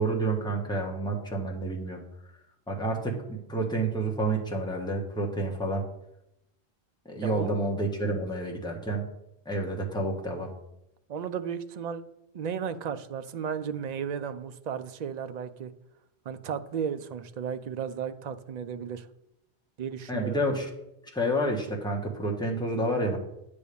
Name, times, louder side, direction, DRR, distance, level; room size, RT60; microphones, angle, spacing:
voice 1, 0.0-2.0 2.7-5.8 7.0-9.0 9.4-10.5 20.1-20.7 21.1-23.2, right 2 dB, 5° left, -1 dB, 1.3 m, -29 dB
voice 2, 7.2-7.5 11.1-12.0 12.3-15.7 16.3-19.1 19.8-20.4, right 7 dB, 55° right, 10 dB, 0.5 m, -34 dB
9.2 x 3.4 x 6.8 m, 0.84 s
omnidirectional pair, 1.1 m